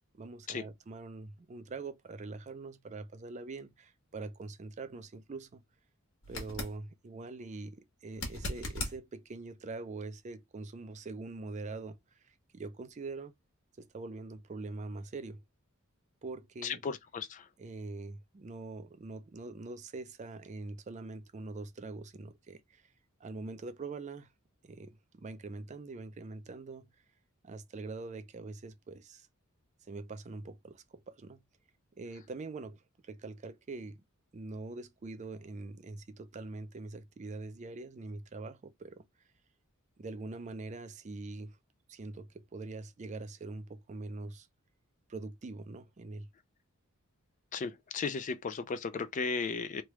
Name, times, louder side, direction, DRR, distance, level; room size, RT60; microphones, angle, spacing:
voice 1, 0.1-5.6 6.3-13.3 13.8-15.4 16.2-16.8 17.6-22.8 23.2-24.3 24.6-26.9 27.4-29.3 29.9-31.4 32.0-34.0 34.3-39.1 40.0-41.6 41.9-44.5 45.1-46.3, right 3 dB, 35° right, 0.4 m, -43 dB
sound 1, 6.2-6.8 8.1-9.0 12.0-12.1, left 1 dB, 60° left, 1.3 m, -38 dB
voice 2, 16.6-17.5 47.5-49.8, left 5 dB, 35° left, 0.4 m, -35 dB
3.2 x 2.3 x 3.0 m
head